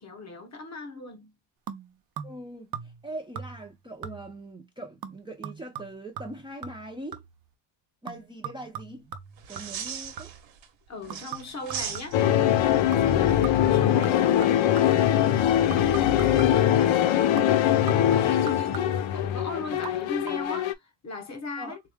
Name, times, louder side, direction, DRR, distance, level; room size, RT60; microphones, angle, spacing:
voice 1, 0.0-1.3 9.5-9.7 10.9-15.1 15.4-21.8, left 3 dB, 35° left, 1.0 m, -38 dB
sound 1, 1.7-2.5 2.7-3.1 3.3-3.7 4.0-4.5 5.0-7.4 8.1-10.5 11.1-12.4 12.9-13.2 13.4-15.1 15.7-16.7 17.4-19.1 19.7-19.9 20.2-20.3, right 8 dB, 50° right, 0.7 m, -41 dB
voice 2, 2.2-2.7 3.0-7.2 8.0-9.1 9.5-10.3 21.6-21.8, right 1 dB, 10° right, 0.6 m, -41 dB
sound 2, 9.4-10.7 11.0-12.5 15.0-15.3, right 8 dB, 75° right, 1.1 m, -38 dB
sound 3, 12.1-20.7, left 11 dB, 80° left, 0.6 m, -22 dB
3.6 x 2.3 x 3.4 m
cardioid pair, 155°, 46 cm